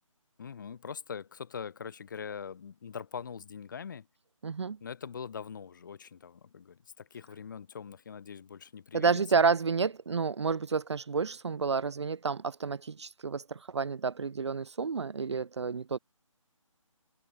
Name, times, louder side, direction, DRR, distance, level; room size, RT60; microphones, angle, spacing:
voice 1, 0.4-4.1 4.8-9.4, left 7 dB, 35° left, 1.3 m, -42 dB
voice 2, 4.4-4.8 8.9-16.0, right 5 dB, 55° right, 0.5 m, -30 dB
figure-of-eight pair, 155°, 17 cm